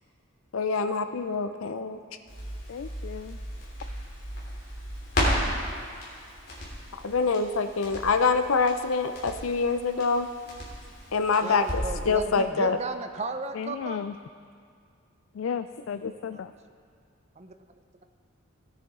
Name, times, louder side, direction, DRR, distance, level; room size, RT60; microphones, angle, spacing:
voice 1, 0.5-2.0 7.0-10.3 11.1-12.8 16.0-16.1, left 4 dB, 85° left, 9 dB, 0.7 m, -25 dB
Crackle, 2.3-12.1 12.4-12.5, equal, 50° left, 3.4 m, -34 dB
voice 2, 2.7-3.4 13.6-14.1 15.4-16.5, left 7 dB, 70° left, 10 dB, 0.3 m, -34 dB
voice 3, 11.4-14.1 16.3-16.4 17.4-17.5, right 3 dB, 30° right, 7 dB, 0.5 m, -35 dB
17.5 x 9.5 x 3.7 m, 2.3 s
head